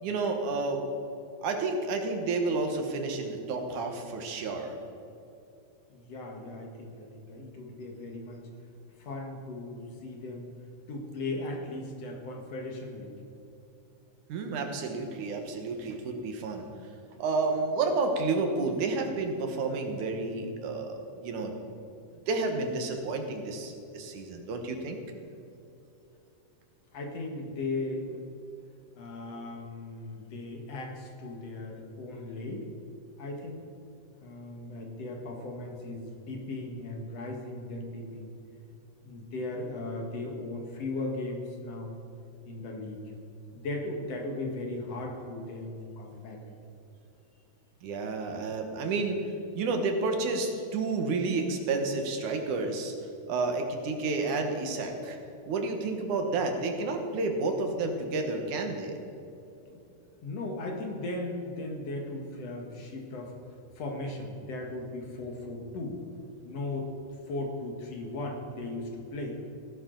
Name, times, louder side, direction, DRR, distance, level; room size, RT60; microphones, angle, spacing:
voice 1, 0.0-0.8 1.4-4.8 14.3-16.7 17.2-21.6 22.3-25.0 47.8-49.2 49.6-52.9 53.3-55.2 55.5-59.0, right 3 dB, 75° right, 4 dB, 2.7 m, -30 dB
voice 2, 5.9-8.5 9.0-10.5 10.9-13.1 26.9-28.1 29.0-32.7 33.2-33.6 34.2-38.3 39.0-42.0 42.5-43.0 43.5-46.5 59.7-59.8 60.2-66.0 66.4-66.9 67.3-69.4, left 2 dB, 60° left, 1 dB, 2.4 m, -37 dB
17.0 x 12.0 x 3.9 m, 2.9 s
omnidirectional pair, 3.6 m